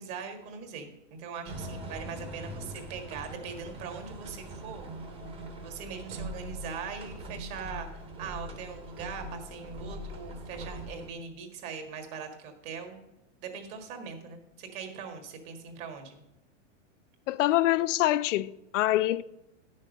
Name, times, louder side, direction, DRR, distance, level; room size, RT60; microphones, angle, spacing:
voice 1, 0.0-4.9 5.6-13.0 13.4-16.2, right 6 dB, 45° right, 1.8 m, -41 dB
sound 1, 1.5-11.1, right 1 dB, 15° right, 0.9 m, -42 dB
voice 2, 17.3-19.2, left 15 dB, 75° left, 0.5 m, -25 dB
9.9 x 6.4 x 5.2 m
supercardioid pair, 155°, 38 cm